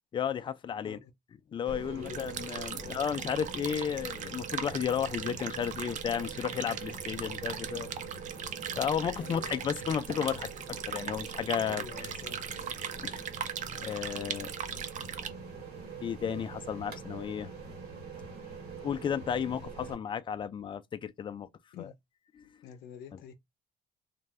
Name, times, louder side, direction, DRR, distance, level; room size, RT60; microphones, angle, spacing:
voice 1, 0.1-1.0 1.5-7.9 8.8-12.1 13.0-13.3 13.7-14.5 16.0-17.5 18.8-21.5 21.8-21.9 22.4-22.5, left 8 dB, 30° left, 0.3 m, -33 dB
voice 2, 0.7-1.1 1.9-3.1 9.2-9.6 11.6-12.8 21.7-21.9 22.6-23.3, left 8 dB, 85° left, 0.6 m, -48 dB
sound 1, 1.6-19.9, right 5 dB, 70° right, 1.5 m, -44 dB
sound 2, 2.0-15.3, right 8 dB, 45° right, 0.5 m, -39 dB
2.5 x 2.2 x 3.2 m
cardioid pair, 110°, 17 cm